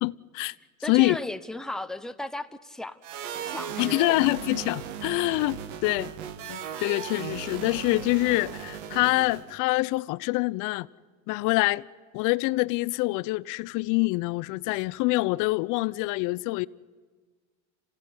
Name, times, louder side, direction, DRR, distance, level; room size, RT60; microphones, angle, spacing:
voice 1, 0.0-0.5 0.9-1.2 3.8-6.1 6.5-10.9 11.3-11.8 12.1-16.7, left 22 dB, 55° left, 0.7 m, -25 dB
voice 2, 0.8-3.0 3.5-4.2, left 1 dB, ahead, 0.8 m, -35 dB
sound 1, 3.0-9.6, right 9 dB, 85° right, 1.7 m, -37 dB
27.0 x 16.5 x 9.6 m
supercardioid pair, 115°, 36 cm